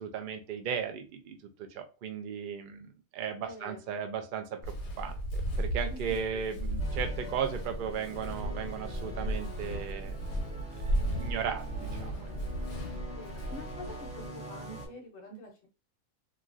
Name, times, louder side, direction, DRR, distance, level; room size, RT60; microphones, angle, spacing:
voice 1, 0.0-1.4 1.7-10.2 11.1-12.3, right 7 dB, 75° right, 6 dB, 0.4 m, -36 dB
voice 2, 3.4-4.0 5.9-6.0 6.3-6.7 13.1-13.9 14.1-15.7, left 2 dB, 55° left, 1 dB, 1.1 m, -47 dB
Walk footsteps, 4.6-14.3, right 1 dB, 80° left, 1.2 m, -35 dB
sound 1, 6.8-14.9, right 1 dB, 5° right, 0.7 m, -44 dB
3.0 x 2.4 x 2.5 m, 0.32 s
omnidirectional pair, 1.5 m